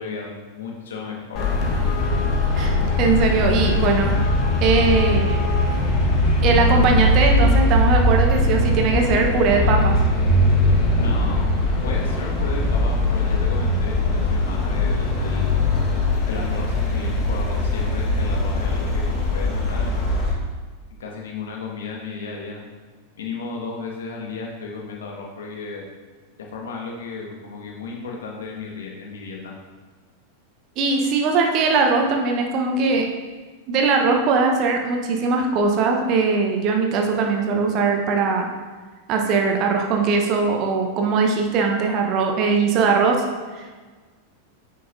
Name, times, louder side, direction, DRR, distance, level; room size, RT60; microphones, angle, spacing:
voice 1, 0.0-1.8 11.0-11.5 11.8-15.6 16.3-20.1 21.0-22.6 23.2-25.9 26.5-29.5, left 4 dB, 60° left, 0 dB, 1.5 m, -34 dB
Traffic noise roadway noise, 1.4-20.3, left 2 dB, 35° left, 1.4 m, -20 dB
voice 2, 2.6-4.1 4.6-5.4 6.4-10.0 30.8-33.1 33.7-38.5 39.1-43.2 43.6-43.7, right 4 dB, 40° right, 2 dB, 0.9 m, -20 dB
9.4 x 5.7 x 2.7 m, 1.4 s
figure-of-eight pair, 90°, 0 cm